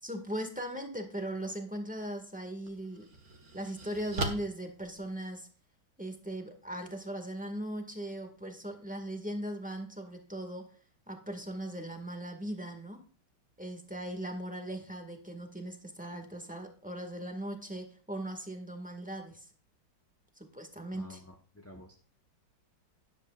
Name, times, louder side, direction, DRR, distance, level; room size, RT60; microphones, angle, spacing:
voice 1, 0.0-3.1 3.5-5.5 6.0-10.7 11.1-13.0 13.6-19.5 20.3-21.2, right 1 dB, 5° right, 4 dB, 1.7 m, -39 dB
sound 1, 1.9-2.1 2.7-5.7, right 2 dB, 50° right, 2.0 m, -40 dB
voice 2, 20.9-22.0, equal, 10° left, 1 dB, 0.7 m, -50 dB
12.5 x 11.0 x 2.5 m, 0.42 s
omnidirectional pair, 2.1 m